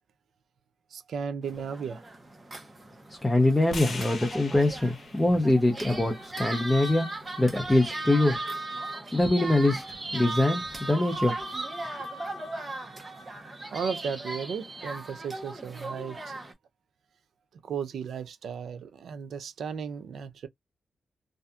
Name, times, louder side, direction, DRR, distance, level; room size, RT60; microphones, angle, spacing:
voice 1, 0.9-2.0 13.7-16.3 17.6-20.5, right 6 dB, 80° right, 0.4 m, -35 dB
sound 1, 1.4-16.5, right 2 dB, 25° right, 0.9 m, -37 dB
voice 2, 3.1-7.1 7.4-8.4 9.1-11.4, left 1 dB, 10° left, 0.7 m, -24 dB
sound 2, 3.7-7.9, left 3 dB, 55° left, 0.9 m, -43 dB
2.6 x 2.4 x 2.2 m
cardioid pair, 105°, 0 cm